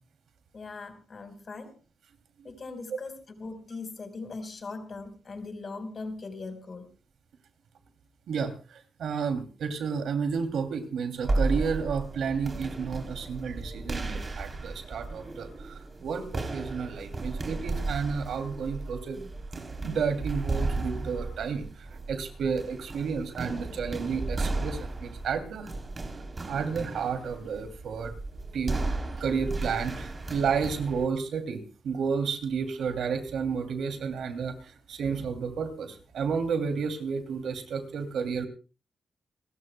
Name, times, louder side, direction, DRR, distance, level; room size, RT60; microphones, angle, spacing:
voice 1, 0.5-1.7 2.4-6.9, left 3 dB, 45° left, 7 dB, 4.6 m, -40 dB
voice 2, 8.3-15.7 16.0-19.2 19.5-21.7 22.1-25.7 26.5-28.1 28.5-28.8 29.2-38.5, right 6 dB, 85° right, 7 dB, 2.8 m, -31 dB
sound 1, 11.2-31.1, right 2 dB, 35° right, 3.5 m, -34 dB
29.0 x 13.5 x 2.3 m, 0.34 s
cardioid pair, 90°, 0 cm